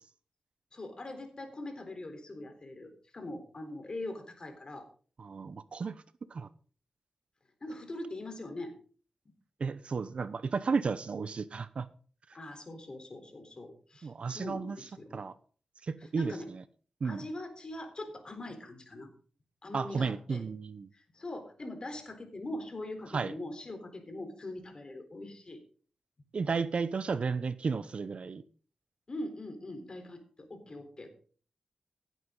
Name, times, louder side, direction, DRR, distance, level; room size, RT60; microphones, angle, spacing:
voice 1, 0.7-4.9 7.6-8.7 12.3-15.2 16.0-16.5 17.0-19.1 19.6-20.4 20.9-25.6 29.1-31.1, left 1 dB, 40° left, 3.9 m, -42 dB
voice 2, 5.2-6.0 6.3-6.5 9.6-11.9 14.0-14.8 15.1-15.3 15.9-16.3 17.0-17.3 19.7-20.9 23.1-23.3 26.3-28.4, right 5 dB, 60° right, 0.8 m, -33 dB
16.5 x 9.2 x 3.9 m
cardioid pair, 70°, 2 cm